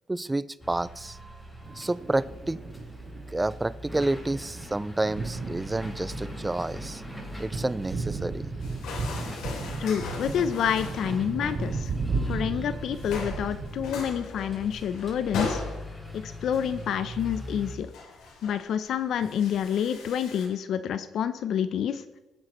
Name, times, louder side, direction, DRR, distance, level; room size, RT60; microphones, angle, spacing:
voice 1, 0.1-1.2 1.8-2.6 3.3-7.0 7.4-8.5, right 2 dB, 15° right, 0.4 m, -29 dB
sound 1, 0.6-17.8, equal, 10° left, 4.9 m, -41 dB
Thunder, 1.6-14.2, right 3 dB, 55° right, 1.3 m, -35 dB
sound 2, 8.6-11.2 11.4-11.9 12.4-12.7 12.9-20.5, left 4 dB, 90° left, 2.9 m, -39 dB
voice 2, 9.8-11.9 12.3-15.6 16.1-17.9 18.4-22.0, left 9 dB, 70° left, 0.6 m, -28 dB
20.5 x 9.0 x 3.1 m
cardioid pair, 90°, 0 cm